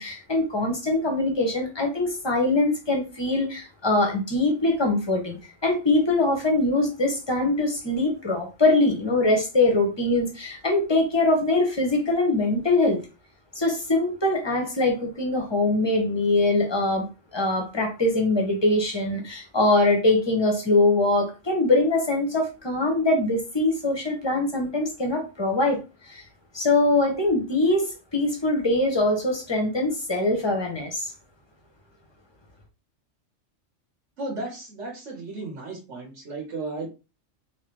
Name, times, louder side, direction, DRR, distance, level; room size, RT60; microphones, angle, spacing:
voice 1, 0.0-13.0 13.5-17.1 17.3-25.8 26.1-26.2 26.5-31.1, left 2 dB, 20° left, 1.0 m, -23 dB
voice 2, 34.2-36.9, right 2 dB, 65° right, 1.3 m, -34 dB
3.8 x 3.0 x 3.3 m
omnidirectional pair, 1.4 m